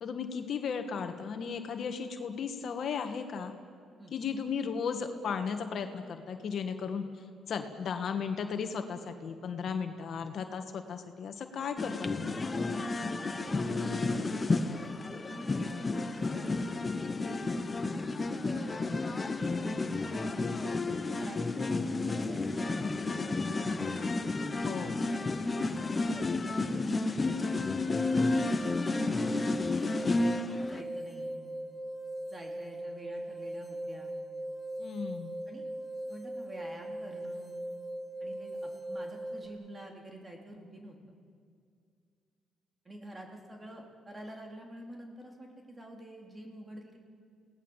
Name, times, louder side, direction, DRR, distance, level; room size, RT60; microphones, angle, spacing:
voice 1, 0.0-3.5 4.1-7.0 7.5-12.5 23.8-24.1 24.6-25.0 34.8-35.4, left 6 dB, 60° left, 6 dB, 1.7 m, -35 dB
sound 1, 11.8-30.8, left 3 dB, 30° left, 1.1 m, -31 dB
voice 2, 13.4-16.8 18.3-18.8 19.5-20.4 21.1-21.5 22.1-24.0 25.4-27.6 28.2-29.4 30.5-31.4 32.3-34.1 35.5-35.6 36.1-37.5 38.2-41.0 42.8-47.0, right 1 dB, 20° right, 1 dB, 3.9 m, -48 dB
sound 2, 27.8-39.5, right 1 dB, ahead, 4.4 m, -40 dB
29.5 x 18.5 x 7.4 m, 2.3 s
cardioid pair, 90°, 0 cm